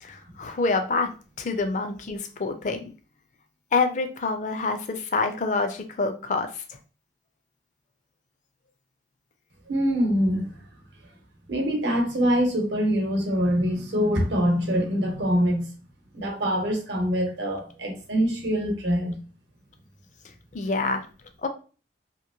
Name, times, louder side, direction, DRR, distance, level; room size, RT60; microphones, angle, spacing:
voice 1, 0.0-1.1 1.4-2.8 3.7-6.6 20.5-21.1 21.4-21.5, left 3 dB, 45° left, 6 dB, 0.4 m, -26 dB
voice 2, 9.7-10.5 11.5-15.7 16.1-19.2, equal, 80° right, 2 dB, 0.9 m, -24 dB
2.9 x 2.5 x 2.6 m, 0.37 s
head